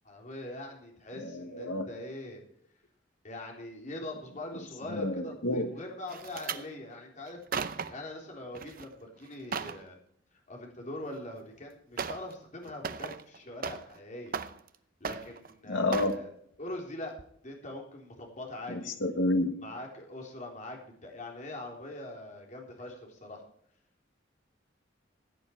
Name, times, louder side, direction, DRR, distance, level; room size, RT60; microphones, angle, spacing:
voice 1, 0.0-2.4 3.2-7.4 7.9-10.0 10.5-14.4 15.0-16.3 16.6-17.1 17.4-18.9 19.6-23.4, left 1 dB, 40° left, 1 dB, 3.6 m, -42 dB
voice 2, 1.2-1.9 4.9-5.7 15.7-16.2 18.7-19.5, left 1 dB, 85° left, 8 dB, 1.6 m, -30 dB
sound 1, 6.1-6.6 7.3-8.1 8.5-8.9 9.2-9.8 11.2-11.3 12.0-12.3 12.6-14.0 14.3-14.8 15.0-15.5 15.9-16.2 16.7-16.9 17.2-17.3, right 5 dB, 50° right, 0.7 m, -37 dB
16.5 x 9.5 x 4.5 m, 0.67 s
head